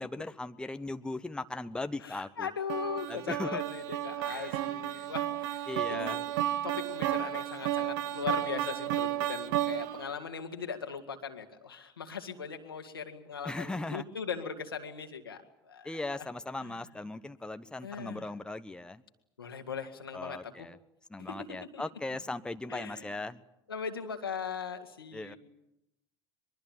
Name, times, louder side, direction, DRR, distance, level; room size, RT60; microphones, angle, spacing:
voice 1, 0.0-2.5 3.1-3.6 4.3-4.6 5.7-6.2 13.4-14.0 15.8-19.0 20.1-20.8 21.1-23.4 25.1-25.4, left 2 dB, 5° left, 10 dB, 1.2 m, -38 dB
voice 2, 2.0-6.2 6.6-16.3 16.6-16.8 17.8-18.3 19.4-20.7 21.2-21.5 21.7-21.8 22.7-23.2 23.7-25.4, left 6 dB, 85° left, 5 dB, 2.3 m, -39 dB
sound 1, 2.7-10.1, right 13 dB, 65° right, 1.2 m, -33 dB
23.5 x 23.0 x 8.9 m, 0.85 s
figure-of-eight pair, 70°, 12 cm